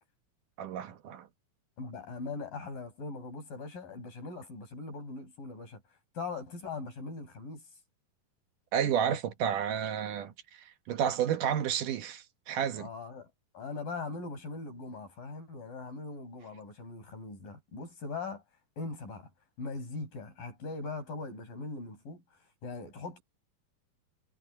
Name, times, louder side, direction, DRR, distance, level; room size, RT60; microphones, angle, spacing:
voice 1, 0.6-1.3 8.7-12.9, right 8 dB, 70° right, 2.6 m, -31 dB
voice 2, 1.8-5.8 6.1-7.7 12.8-18.4 18.8-19.3 19.6-22.2 22.6-23.2, left 3 dB, 70° left, 9.1 m, -40 dB
omnidirectional pair, 4.1 m